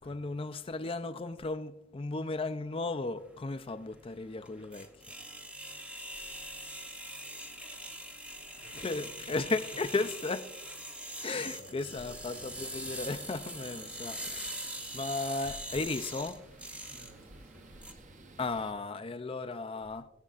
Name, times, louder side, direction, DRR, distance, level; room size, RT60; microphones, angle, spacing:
voice 1, 0.0-4.9 8.7-10.5 11.2-14.7 14.9-16.4 18.4-20.1, left 3 dB, 25° left, 0.4 m, -35 dB
sound 1, 3.2-17.9, right 1 dB, 5° right, 0.7 m, -43 dB
voice 2, 8.5-8.9 9.2-9.5 11.4-13.1 16.9-18.5, equal, 80° right, 3.3 m, -57 dB
sound 2, 12.1-18.7, right 2 dB, 40° right, 0.8 m, -54 dB
19.5 x 9.2 x 2.5 m
head